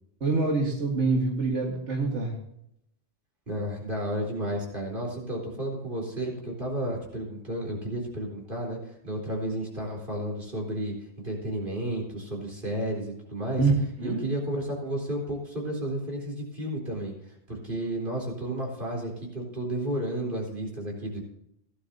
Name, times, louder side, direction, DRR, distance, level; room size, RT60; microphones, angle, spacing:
voice 1, 0.2-2.3 13.6-13.7 14.0-14.2, right 3 dB, 85° right, -1 dB, 2.1 m, -25 dB
voice 2, 3.5-10.9 11.2-13.6 14.0-21.2, right 1 dB, 50° right, -1 dB, 4.1 m, -32 dB
16.5 x 11.0 x 2.8 m, 0.76 s
omnidirectional pair, 1.2 m